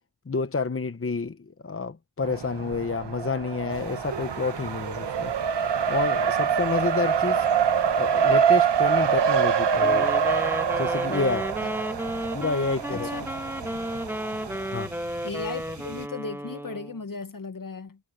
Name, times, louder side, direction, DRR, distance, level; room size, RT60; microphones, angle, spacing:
voice 1, 0.3-1.4 1.6-5.3 5.9-7.5 7.9-10.1 10.8-11.5 12.3-13.1 14.7-14.9, left 4 dB, 35° left, 0.9 m, -29 dB
Race car auto racing, 2.2-14.9, right 7 dB, 90° right, 1.0 m, -25 dB
sound 1, 3.7-16.1, right 3 dB, 45° right, 5.9 m, -46 dB
Wind instrument woodwind instrument, 9.7-17.0, equal, 5° right, 1.5 m, -33 dB
voice 2, 12.9-13.3 15.2-18.0, left 4 dB, 55° left, 1.3 m, -36 dB
wide cardioid pair, 50°, 41 cm